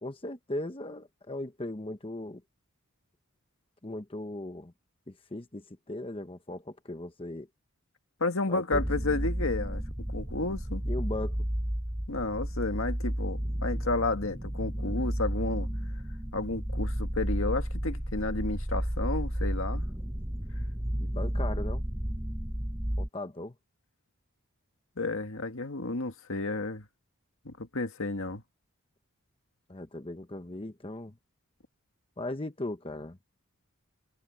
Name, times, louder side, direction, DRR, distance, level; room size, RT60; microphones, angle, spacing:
voice 1, 0.0-2.4 3.8-4.7 5.1-7.5 8.5-8.8 10.8-11.4 20.9-21.8 23.0-23.5 29.7-31.1 32.2-33.2, left 1 dB, 25° left, 0.9 m, -38 dB
voice 2, 8.2-9.8 10.1-10.8 12.1-15.7 16.3-19.9 25.0-26.8 27.5-28.4, left 2 dB, 70° left, 1.9 m, -32 dB
sound 1, 8.7-23.1, equal, 10° right, 0.9 m, -32 dB
head